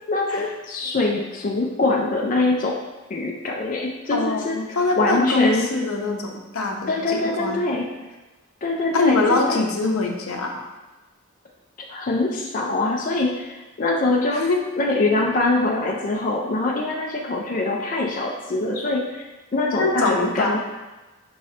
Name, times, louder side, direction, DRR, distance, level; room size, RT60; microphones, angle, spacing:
voice 1, 0.1-2.8 3.1-5.7 6.9-7.9 8.6-9.7 11.8-14.5 14.8-20.6, left 2 dB, 40° left, 0 dB, 0.4 m, -24 dB
voice 2, 4.1-7.7 8.9-10.7 14.3-14.6 19.8-20.6, left 3 dB, 80° left, 1 dB, 0.6 m, -23 dB
5.9 x 3.1 x 2.8 m, 1.2 s
head